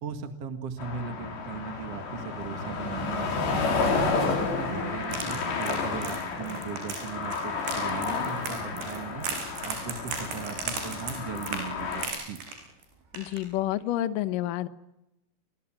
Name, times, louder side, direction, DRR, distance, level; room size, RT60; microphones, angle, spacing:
voice 1, 0.0-3.6 4.0-9.2 9.6-12.4, right 5 dB, 50° right, 6 dB, 2.2 m, -38 dB
sound 1, 0.8-12.1, left 4 dB, 85° left, 6.4 m, -31 dB
sound 2, 5.0-12.8 13.1-13.4 13.7-13.8, right 4 dB, 80° right, 7.1 m, -37 dB
voice 2, 13.1-14.7, left 13 dB, 65° left, 11 dB, 2.3 m, -29 dB
29.0 x 21.5 x 7.5 m, 0.89 s
omnidirectional pair, 4.9 m